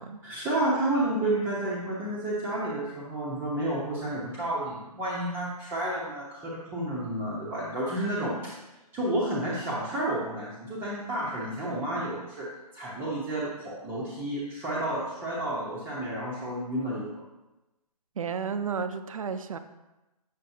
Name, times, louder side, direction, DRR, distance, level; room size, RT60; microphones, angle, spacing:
voice 1, 0.2-8.5 8.9-12.5 12.7-17.1, right 1 dB, 10° right, -7 dB, 0.9 m, -31 dB
voice 2, 18.2-19.6, right 6 dB, 55° right, 10 dB, 0.6 m, -32 dB
7.5 x 6.8 x 2.7 m, 1.0 s
hypercardioid pair, 155°, 20 cm